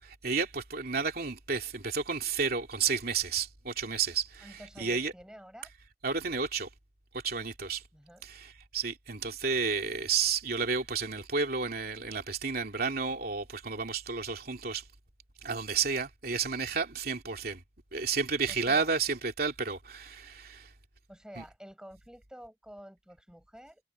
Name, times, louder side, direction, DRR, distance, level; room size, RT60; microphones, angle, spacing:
voice 1, 0.0-5.1 6.0-6.7 7.1-7.8 8.2-14.9 15.4-17.6 17.9-20.7 21.4-21.5, right 5 dB, 55° right, 3.0 m, -31 dB
voice 2, 4.4-5.7 7.9-8.2 18.5-18.9 21.1-23.8, equal, 5° right, 6.7 m, -49 dB
head